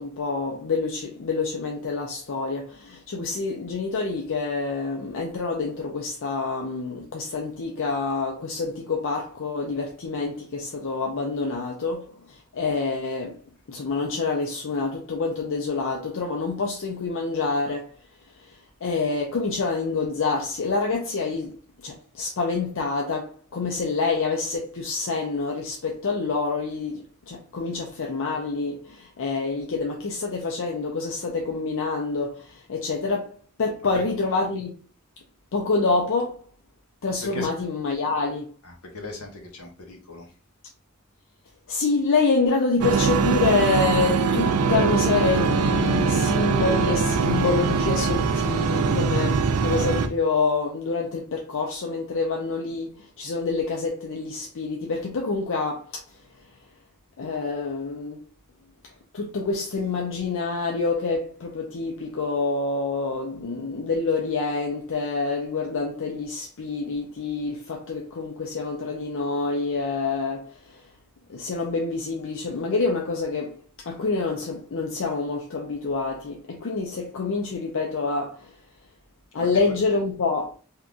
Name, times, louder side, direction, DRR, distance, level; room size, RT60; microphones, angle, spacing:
voice 1, 0.0-13.4 13.7-17.9 18.4-34.8 35.5-36.4 37.0-38.5 41.7-56.0 57.2-58.2 59.1-70.8 71.3-78.6 79.3-80.5, left 4 dB, 60° left, 0.5 m, -27 dB
voice 2, 38.6-40.3 47.1-47.5 49.2-49.4 79.4-79.6, left 2 dB, 80° left, 1.0 m, -38 dB
sound 1, 42.8-50.1, right 5 dB, 75° right, 0.4 m, -22 dB
3.6 x 2.8 x 2.4 m
head